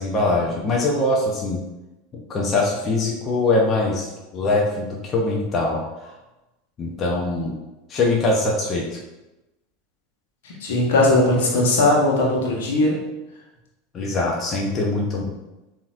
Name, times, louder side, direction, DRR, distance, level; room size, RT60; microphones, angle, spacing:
voice 1, 0.0-1.6 2.3-6.1 6.8-7.5 7.9-9.0 13.9-15.3, left 2 dB, 30° left, -1 dB, 0.8 m, -22 dB
voice 2, 10.6-13.0, left 2 dB, 65° left, -2 dB, 1.2 m, -18 dB
7.0 x 2.8 x 2.6 m, 1.0 s
figure-of-eight pair, 80°, 0 cm